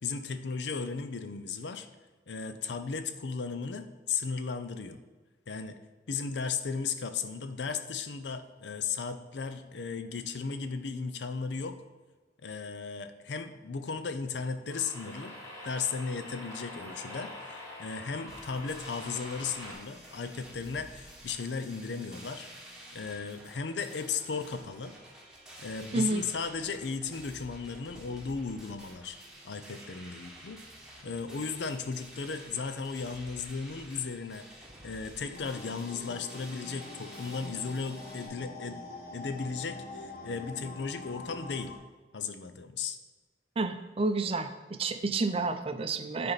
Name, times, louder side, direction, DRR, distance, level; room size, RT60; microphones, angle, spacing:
voice 1, 0.0-1.9 2.3-5.0 5.5-5.8 6.1-11.8 12.4-15.4 15.6-17.3 17.8-22.5 22.9-25.0 25.6-29.2 29.4-30.6 31.0-34.5 34.8-38.8 39.1-41.8 42.1-43.0, left 5 dB, 80° left, 10 dB, 0.6 m, -35 dB
sound 1, 14.7-19.7, left 1 dB, 15° left, 2.0 m, -45 dB
sound 2, 18.3-38.3, right 1 dB, 5° right, 1.3 m, -50 dB
sound 3, 35.3-41.8, left 2 dB, 60° left, 1.2 m, -45 dB
voice 2, 43.6-44.5 44.8-46.3, right 3 dB, 35° right, 8 dB, 0.5 m, -29 dB
9.8 x 4.3 x 4.1 m, 1.3 s
head